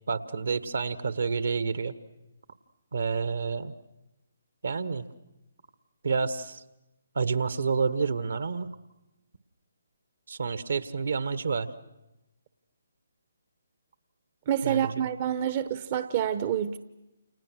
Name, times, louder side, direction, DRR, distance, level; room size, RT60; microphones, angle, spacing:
voice 1, 0.1-1.9 2.9-3.7 4.6-5.1 6.0-6.6 7.2-8.7 10.3-11.7 14.6-14.9, right 5 dB, 65° right, 13 dB, 1.6 m, -29 dB
voice 2, 14.5-16.8, right 9 dB, 35° right, 11 dB, 0.9 m, -27 dB
29.5 x 29.0 x 6.4 m, 0.96 s
figure-of-eight pair, 145°, 0 cm